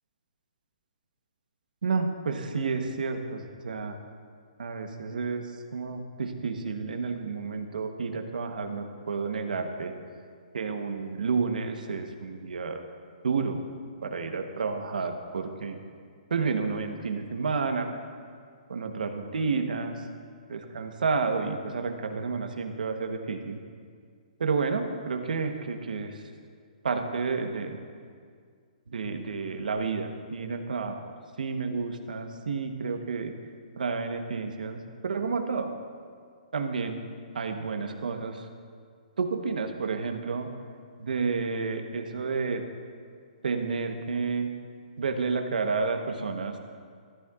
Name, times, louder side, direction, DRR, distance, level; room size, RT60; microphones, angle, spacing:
voice 1, 1.8-4.0 4.6-9.9 10.5-12.8 13.2-13.6 14.0-15.8 16.3-17.9 18.7-20.0 20.5-23.6 24.4-26.2 26.8-27.8 28.9-33.3 33.8-35.7 36.5-37.0 37.3-38.5 39.2-40.5 41.0-42.6 43.4-44.5 45.0-46.6, right 4 dB, 85° right, 6 dB, 1.0 m, -30 dB
14.5 x 11.5 x 2.4 m, 2.1 s
hypercardioid pair, 160°, 4 cm